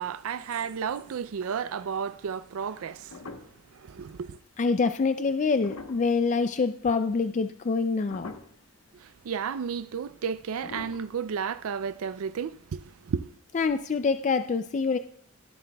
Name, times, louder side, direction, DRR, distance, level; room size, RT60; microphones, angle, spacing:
voice 1, 0.0-3.3 3.7-4.4 8.9-13.4, right 7 dB, 80° right, 0.4 m, -33 dB
sound 1, 1.0-1.8 2.2-2.3 2.7-3.8 4.3-4.4 5.4-6.9 7.3-7.8 8.1-8.8 9.2-9.3 9.5-9.7 10.5-12.1 12.4-12.5, left 3 dB, 85° left, 1.1 m, -45 dB
voice 2, 4.6-8.3 13.5-15.0, left 4 dB, 35° left, 0.3 m, -26 dB
17.0 x 11.5 x 2.3 m
head